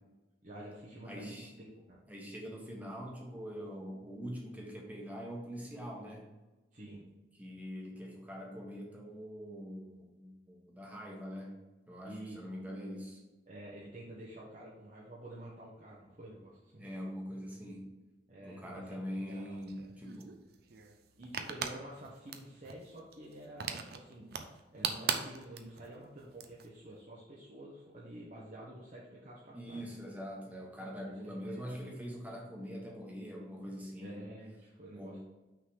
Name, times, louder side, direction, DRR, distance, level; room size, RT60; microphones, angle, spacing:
voice 1, 0.4-2.0 6.7-7.0 12.0-12.5 13.5-16.8 18.3-19.2 21.2-30.0 31.2-31.8 34.0-35.2, right 1 dB, 45° right, -5 dB, 0.9 m, -49 dB
voice 2, 1.0-1.5 2.1-6.2 7.4-13.2 16.8-17.9 18.4-20.4 29.5-34.3 34.9-35.2, equal, 10° right, -1 dB, 1.2 m, -43 dB
sound 1, 19.3-26.7, right 6 dB, 60° right, 0.5 m, -40 dB
5.9 x 3.8 x 4.8 m, 1.1 s
head